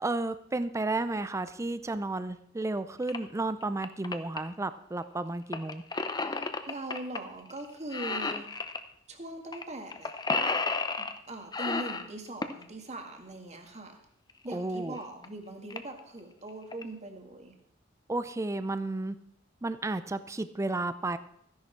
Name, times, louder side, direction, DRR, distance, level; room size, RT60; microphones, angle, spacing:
voice 1, 0.0-5.8 14.5-15.0 18.1-19.2 19.6-21.2, right 2 dB, 15° right, 12 dB, 0.4 m, -32 dB
sound 1, 3.0-3.2 3.6-4.4 5.5-7.2 7.5-7.7 7.9-8.8 9.5-9.6 9.9-11.2 11.5-12.6 14.3-14.4 15.0-15.1 15.2-15.3 15.7-16.0 16.5-16.8, left 3 dB, 20° left, 0.7 m, -32 dB
voice 2, 6.3-8.5 9.1-10.1 11.0-14.0 14.4-17.5, right 1 dB, 35° right, 4 dB, 1.9 m, -41 dB
14.5 x 10.5 x 4.5 m, 0.70 s
head